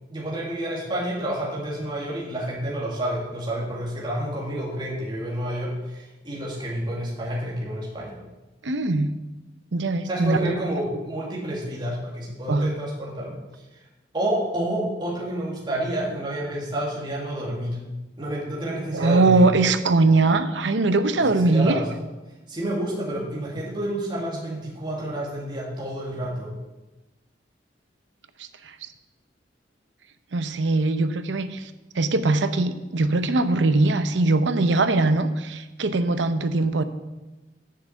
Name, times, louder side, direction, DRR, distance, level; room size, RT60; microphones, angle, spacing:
voice 1, 0.1-8.2 10.0-13.4 14.1-17.8 18.2-19.5 21.1-21.9 22.5-26.5, right 1 dB, 25° right, -5 dB, 2.2 m, -29 dB
voice 2, 8.6-9.1 9.7-10.5 12.5-12.8 18.9-21.8 28.4-28.9 30.3-36.8, right 2 dB, 70° right, 10 dB, 0.7 m, -21 dB
7.4 x 7.1 x 7.8 m, 1.1 s
head